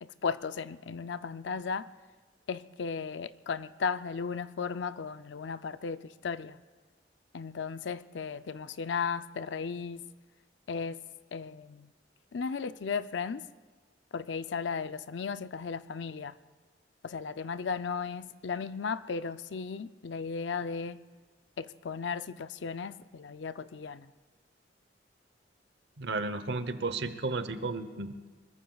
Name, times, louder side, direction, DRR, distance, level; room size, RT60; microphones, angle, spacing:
voice 1, 0.0-1.9 2.5-6.6 7.3-10.0 10.7-11.0 11.3-11.9 12.3-13.4 14.1-16.3 17.0-21.0 21.6-24.1, left 5 dB, 80° left, 13 dB, 0.5 m, -35 dB
voice 2, 26.0-28.3, right 3 dB, 65° right, 11 dB, 0.9 m, -33 dB
24.5 x 21.5 x 2.4 m, 1.3 s
head